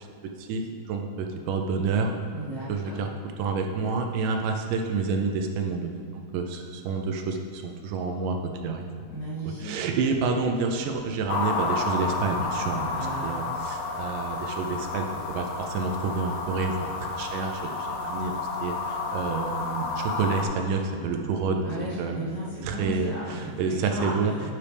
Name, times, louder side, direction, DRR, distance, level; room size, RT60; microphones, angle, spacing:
voice 1, 0.9-2.1 2.7-3.1 3.4-6.0 6.3-8.4 8.6-8.8 9.6-12.9 13.2-17.7 18.0-18.3 18.6-21.6 22.0-22.2 22.6-24.3, right 4 dB, 80° right, 4 dB, 2.0 m, -28 dB
voice 2, 2.3-3.1 9.1-9.7 12.9-13.5 21.6-24.5, right 1 dB, 35° left, -9 dB, 2.5 m, -35 dB
sound 1, 11.3-20.4, left 3 dB, 75° left, 2.4 m, -31 dB
9.8 x 6.3 x 3.4 m, 2.4 s
omnidirectional pair, 4.1 m